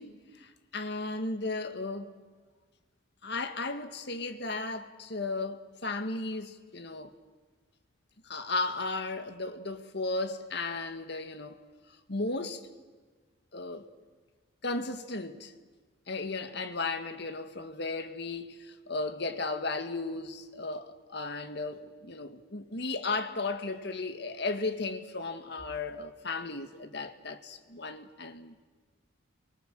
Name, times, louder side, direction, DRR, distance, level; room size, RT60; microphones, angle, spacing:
voice 1, 0.0-2.1 3.2-7.1 8.2-11.6 12.1-12.6 13.5-13.9 14.6-15.5 16.1-28.5, left 3 dB, 55° left, 2.0 m, -35 dB
29.5 x 24.0 x 7.8 m
head